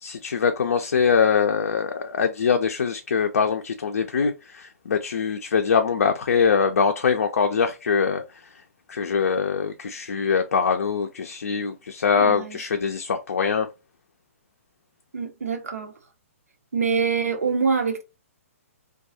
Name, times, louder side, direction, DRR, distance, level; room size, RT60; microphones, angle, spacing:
voice 1, 0.0-8.4 8.9-13.7, left 6 dB, 80° left, 0.4 m, -23 dB
voice 2, 12.2-12.7 15.1-16.0 16.7-18.0, right 5 dB, 85° right, 0.7 m, -25 dB
2.3 x 2.2 x 2.6 m
hypercardioid pair, 130°, 8 cm